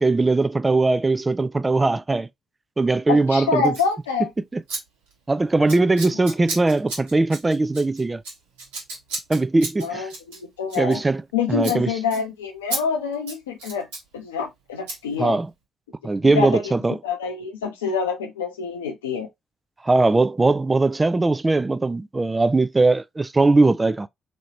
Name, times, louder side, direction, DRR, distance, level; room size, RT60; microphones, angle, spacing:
voice 1, 0.0-2.3 2.8-3.7 4.5-4.6 5.3-8.2 9.3-10.1 10.8-11.2 11.5-11.9 15.2-15.5 16.0-16.9 19.8-24.1, right 3 dB, 25° right, 0.3 m, -20 dB
voice 2, 3.1-4.3 9.8-11.0 11.3-13.9 14.1-15.4 16.2-16.7 17.0-19.3, left 5 dB, 85° left, 0.6 m, -26 dB
Scissors, 3.6-3.9 4.7-4.8 5.1-5.3 5.7-11.3 11.6-11.8 12.1-12.2 12.7-12.8 13.1-14.1 14.9-15.0, right 3 dB, 80° right, 1.3 m, -33 dB
3.1 x 2.7 x 3.0 m
figure-of-eight pair, 45°, 0 cm